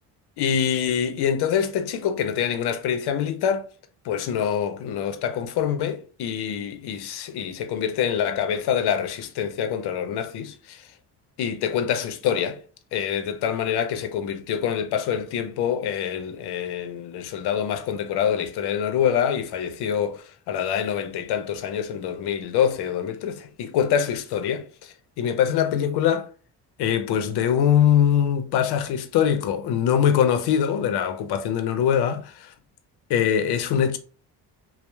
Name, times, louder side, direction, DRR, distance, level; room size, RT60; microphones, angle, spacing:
voice 1, 0.4-3.7 4.0-10.8 11.4-12.6 12.9-26.3 26.8-32.5 33.1-34.0, left 8 dB, 65° left, 0.6 m, -24 dB
2.8 x 2.0 x 2.2 m
supercardioid pair, 70°, 42 cm